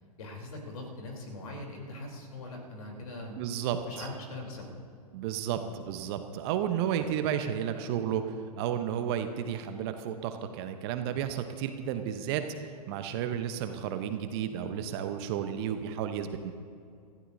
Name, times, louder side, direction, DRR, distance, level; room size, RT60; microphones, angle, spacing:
voice 1, 0.2-3.3 3.9-4.7 5.4-5.6, left 2 dB, 60° left, 0 dB, 3.7 m, -41 dB
voice 2, 3.3-4.0 5.1-5.6 5.9-12.4 12.9-16.5, right 9 dB, 40° right, 8 dB, 1.0 m, -32 dB
24.0 x 15.0 x 2.8 m, 2.4 s
figure-of-eight pair, 105°, 20 cm